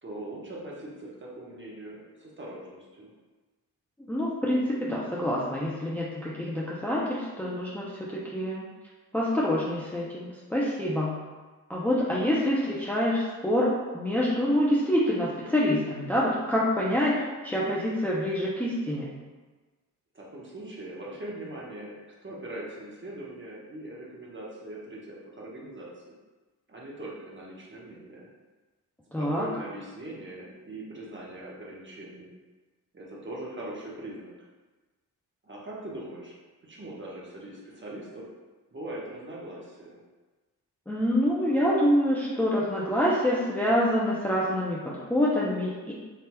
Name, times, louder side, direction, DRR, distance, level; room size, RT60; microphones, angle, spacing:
voice 1, 0.0-3.1 20.1-21.9 22.2-26.2 26.7-28.3 29.2-32.3 32.9-34.3 35.4-36.4 36.6-38.3 38.7-40.0, right 1 dB, 30° right, -4 dB, 1.0 m, -41 dB
voice 2, 4.0-8.7 9.1-11.2 11.7-17.1 17.4-19.1 29.1-29.5 40.9-45.9, equal, 5° left, -6 dB, 0.5 m, -26 dB
3.3 x 2.7 x 2.2 m, 1.3 s
supercardioid pair, 40°, 42 cm